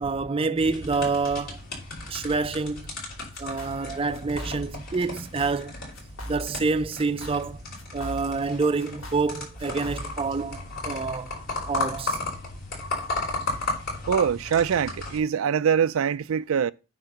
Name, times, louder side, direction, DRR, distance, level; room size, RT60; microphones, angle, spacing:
voice 1, 0.0-1.6 2.1-2.9 3.4-5.8 6.3-7.6 7.9-11.3 11.7-12.2, right 4 dB, 25° right, 0.5 m, -27 dB
sound 1, 0.6-15.2, left 2 dB, 50° left, 5.1 m, -35 dB
sound 2, 3.3-3.9 4.1-4.9 5.1-5.7 5.9-6.7 7.0-8.5 8.8-10.3, equal, 80° left, 3.1 m, -39 dB
voice 2, 14.1-16.7, right 7 dB, 80° right, 0.4 m, -23 dB
9.3 x 3.8 x 7.1 m
head